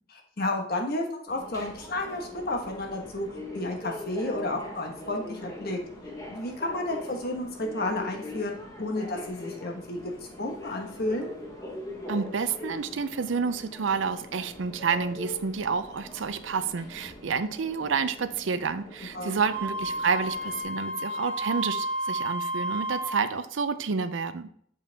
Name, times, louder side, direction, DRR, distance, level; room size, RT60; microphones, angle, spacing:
voice 1, 0.1-5.8 6.3-11.3 19.1-19.3, left 2 dB, 50° left, 2 dB, 1.2 m, -32 dB
Subway metro underground, 1.3-20.6, left 2 dB, 15° left, 1.2 m, -42 dB
voice 2, 12.1-24.5, right 5 dB, 75° right, 11 dB, 0.5 m, -29 dB
Wind instrument woodwind instrument, 19.5-23.2, right 1 dB, 90° right, 2.4 m, -31 dB
6.7 x 5.4 x 3.4 m, 0.65 s
head